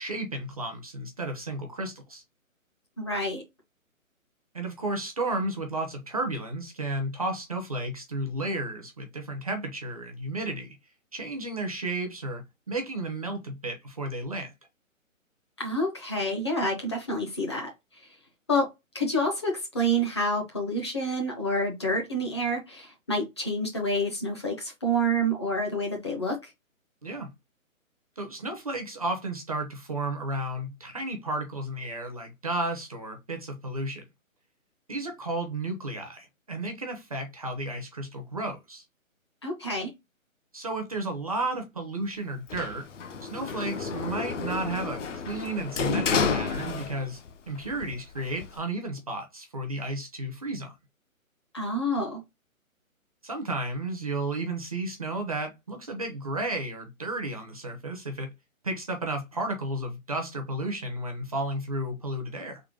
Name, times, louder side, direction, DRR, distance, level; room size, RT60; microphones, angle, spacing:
voice 1, 0.0-2.2 4.5-10.8 11.1-14.5 27.0-27.3 28.2-34.0 34.9-38.8 40.5-42.9 43.2-47.2 47.5-50.7 53.2-58.3 58.6-62.6, right 2 dB, 25° right, 0.5 m, -33 dB
voice 2, 3.0-3.4 15.6-17.7 18.5-18.7 18.9-26.5 39.4-39.9 51.5-52.2, equal, 20° left, 0.6 m, -28 dB
Sliding door, 42.5-47.3 47.6-48.6, left 5 dB, 60° left, 0.6 m, -30 dB
3.7 x 2.1 x 3.6 m
figure-of-eight pair, 150°, 42 cm